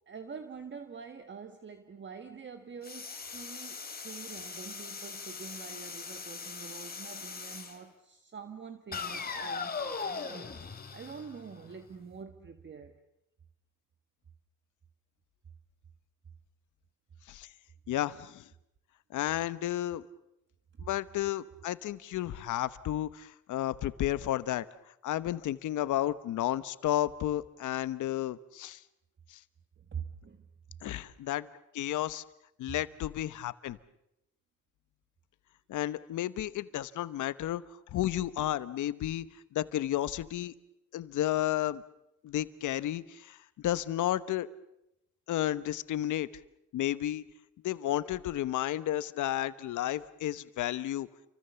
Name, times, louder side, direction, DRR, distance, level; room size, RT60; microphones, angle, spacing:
voice 1, 0.1-10.6 10.9-13.0 29.8-30.5 32.7-32.8, right 6 dB, 40° right, 1.7 m, -46 dB
sound 1, 2.8-7.8 8.9-11.8, left 5 dB, 30° left, 3.1 m, -40 dB
voice 2, 17.9-18.5 19.1-20.0 20.8-24.7 25.0-28.8 29.3-29.4 30.8-31.5 31.7-32.2 32.6-33.8 35.7-37.6 37.9-39.2 39.5-40.5 40.9-41.8 42.2-44.5 45.3-46.3 46.7-47.2 47.6-51.1, left 13 dB, 80° left, 1.1 m, -32 dB
29.5 x 24.5 x 7.0 m
cardioid pair, 90°, 30 cm